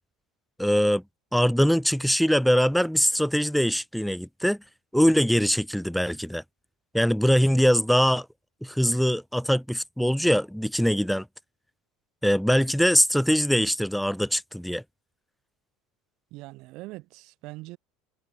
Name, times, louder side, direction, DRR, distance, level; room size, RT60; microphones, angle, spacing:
voice 1, 0.6-1.0 1.3-4.6 4.9-6.4 6.9-8.3 8.6-11.3 12.2-14.8, equal, ahead, 0.8 m, -22 dB
voice 2, 16.3-17.8, right 21 dB, 50° right, 1.1 m, -42 dB
figure-of-eight pair, 70°, 0 cm